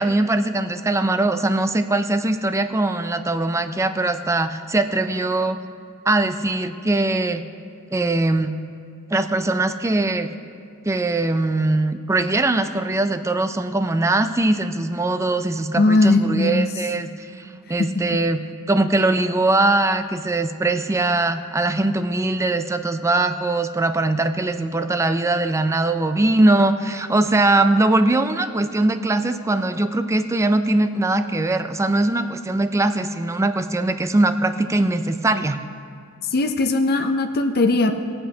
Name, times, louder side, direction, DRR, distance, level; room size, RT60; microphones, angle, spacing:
voice 1, 0.0-5.6 6.1-7.4 7.9-8.5 9.1-10.3 10.8-18.4 18.7-35.6, right 2 dB, 15° right, 9 dB, 0.4 m, -21 dB
voice 2, 15.8-16.7 17.8-18.2 36.3-37.9, left 2 dB, 45° left, 5 dB, 0.5 m, -19 dB
21.0 x 7.8 x 2.8 m, 2.4 s
head